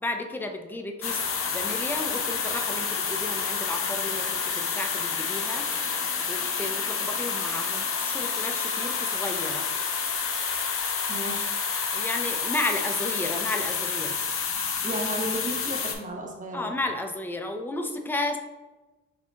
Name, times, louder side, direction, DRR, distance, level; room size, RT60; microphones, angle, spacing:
voice 1, 0.0-1.2 1.5-5.7 6.3-9.7 11.9-14.2 16.5-18.4, left 2 dB, 5° left, 4 dB, 0.4 m, -33 dB
sound 1, 1.0-16.0, left 5 dB, 45° left, 0.7 m, -29 dB
voice 2, 11.1-11.5 14.8-16.7, right 1 dB, 25° right, -1 dB, 1.0 m, -34 dB
6.6 x 2.8 x 2.3 m, 1.2 s
cardioid pair, 90°, 30 cm